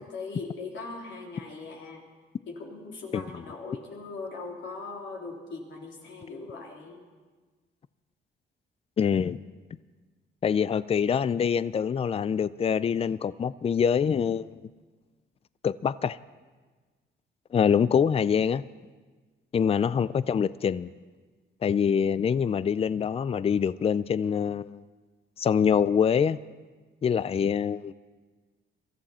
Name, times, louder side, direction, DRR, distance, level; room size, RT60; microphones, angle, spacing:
voice 1, 0.0-2.0 2.5-7.0, left 3 dB, 70° left, -2 dB, 3.7 m, -40 dB
voice 2, 9.0-9.4 10.4-14.6 15.6-16.2 17.5-18.6 19.5-20.9 21.6-24.8 25.4-26.4 27.0-27.9, left 7 dB, 30° left, 17 dB, 0.4 m, -25 dB
23.5 x 14.0 x 4.3 m, 1.4 s
cardioid pair, 90°, 20 cm